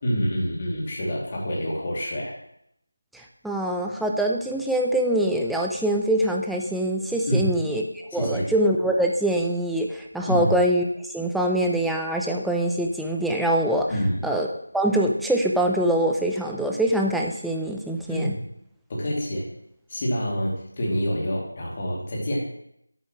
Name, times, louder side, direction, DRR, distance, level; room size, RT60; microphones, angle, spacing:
voice 1, 0.0-2.3 7.3-7.5 8.1-8.5 10.3-10.5 13.9-14.3 18.1-18.4 18.9-19.5 19.9-22.4, equal, 25° left, -3 dB, 2.7 m, -27 dB
voice 2, 3.1-7.8 8.1-13.9 14.2-14.5 14.7-18.4, right 1 dB, ahead, 0 dB, 0.5 m, -24 dB
13.5 x 10.0 x 3.2 m, 0.73 s
figure-of-eight pair, 170°, 0 cm